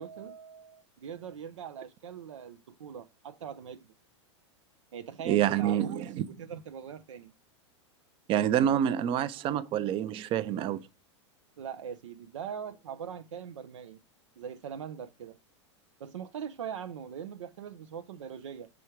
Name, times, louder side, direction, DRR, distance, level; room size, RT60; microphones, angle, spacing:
voice 1, 0.0-3.9 4.9-7.3 11.6-14.0 14.4-15.4 16.0-18.7, right 8 dB, 85° right, 0.5 m, -41 dB
voice 2, 5.3-6.1 8.3-10.8, right 10 dB, 35° right, 0.5 m, -27 dB
6.1 x 3.5 x 4.4 m
hypercardioid pair, 115°, 15 cm